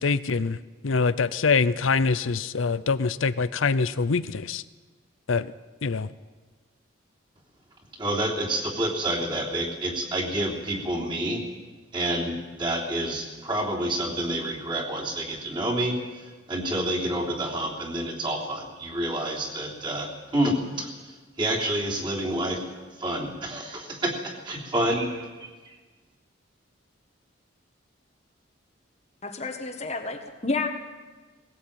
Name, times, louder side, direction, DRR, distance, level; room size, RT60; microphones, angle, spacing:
voice 1, 0.0-4.6 5.3-5.5 5.8-6.1, left 4 dB, 85° left, 14 dB, 0.6 m, -24 dB
voice 2, 8.0-11.4 11.9-21.0 21.4-22.6 23.0-25.5, right 1 dB, 25° right, -2 dB, 3.4 m, -28 dB
voice 3, 29.2-30.7, left 3 dB, 35° left, 5 dB, 1.6 m, -30 dB
19.5 x 17.0 x 8.8 m, 1.3 s
head